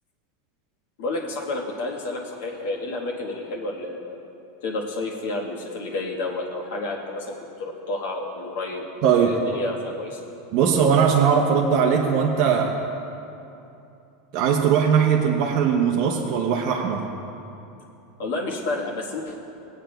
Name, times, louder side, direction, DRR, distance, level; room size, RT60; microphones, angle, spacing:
voice 1, 1.0-4.2 4.6-10.2 18.2-19.4, left 2 dB, 70° left, -1 dB, 1.3 m, -30 dB
voice 2, 9.0-9.4 10.5-12.7 14.3-17.0, right 7 dB, 35° right, -1 dB, 0.5 m, -20 dB
18.0 x 8.7 x 2.3 m, 2.8 s
supercardioid pair, 175°, 0 cm